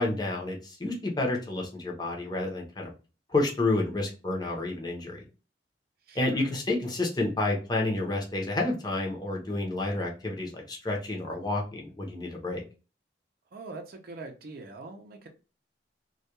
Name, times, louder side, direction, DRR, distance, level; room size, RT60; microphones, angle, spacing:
voice 1, 0.0-2.9 3.3-5.2 6.1-12.6, left 2 dB, 25° left, 0.7 m, -30 dB
voice 2, 6.1-6.5 13.5-15.3, right 3 dB, 55° right, 0.5 m, -43 dB
2.3 x 2.2 x 2.8 m
head